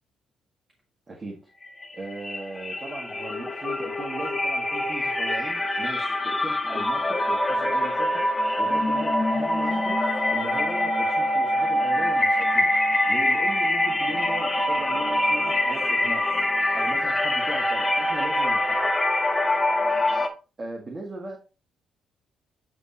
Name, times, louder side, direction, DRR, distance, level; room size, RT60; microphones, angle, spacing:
voice 1, 1.1-1.4 1.9-8.1 8.6-10.0 10.3-12.7 13.1-16.2 16.7-18.9 20.6-21.4, right 2 dB, 30° right, -2 dB, 1.8 m, -38 dB
sound 1, 1.6-1.9 2.2-20.3, left 1 dB, 25° left, 1.3 m, -24 dB
11.0 x 3.7 x 3.0 m, 0.32 s
cardioid pair, 90°, 0 cm